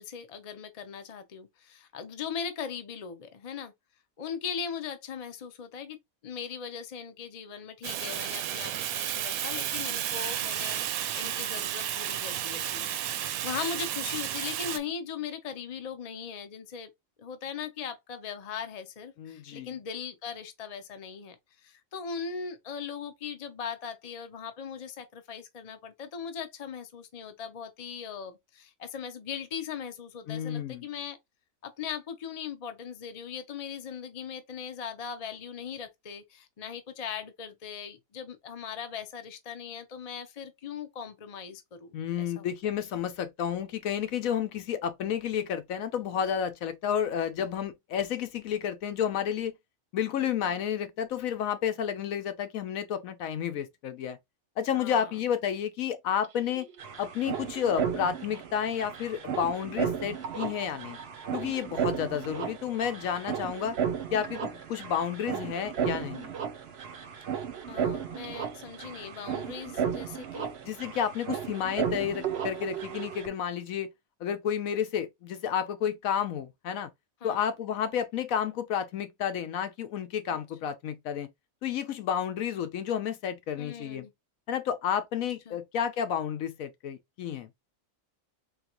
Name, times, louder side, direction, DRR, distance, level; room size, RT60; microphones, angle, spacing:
voice 1, 0.0-3.7 4.2-6.0 6.2-16.9 17.2-21.4 21.6-31.2 31.6-42.5 54.7-55.1 67.7-70.5 77.2-77.5 80.3-80.4 83.6-84.1 85.5-85.6, left 7 dB, 40° left, 0.6 m, -39 dB
Fire, 7.8-14.8, right 11 dB, 85° right, 1.0 m, -32 dB
voice 2, 19.2-19.7 30.3-30.9 41.9-49.5 49.9-54.2 54.6-56.7 57.0-61.0 61.3-63.8 64.1-66.3 70.6-73.9 74.2-76.9 77.2-81.3 81.6-84.1 84.5-87.5, left 8 dB, 75° left, 1.1 m, -31 dB
sound 1, 56.2-56.3 56.5-73.3, right 8 dB, 55° right, 0.8 m, -34 dB
3.9 x 3.2 x 2.9 m
omnidirectional pair, 1.5 m